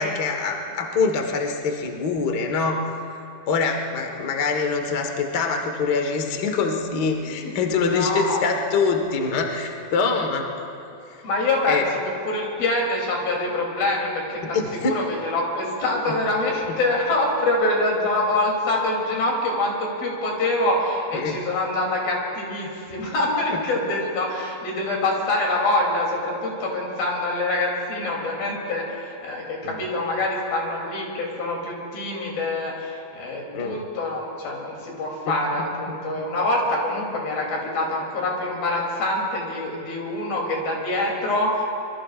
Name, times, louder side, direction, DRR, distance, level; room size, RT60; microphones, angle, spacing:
voice 1, 0.0-2.8 3.5-10.5 11.1-11.2 11.7-11.8 14.4-15.0 16.1-16.2 16.7-16.8 21.1-21.4 29.6-29.8 33.5-33.8 35.3-36.3, left 4 dB, 55° left, 3 dB, 1.1 m, -25 dB
voice 2, 7.9-8.4 11.2-14.6 14.8-41.6, left 2 dB, 80° left, -2 dB, 4.8 m, -25 dB
25.5 x 22.5 x 2.5 m, 2.9 s
omnidirectional pair, 4.1 m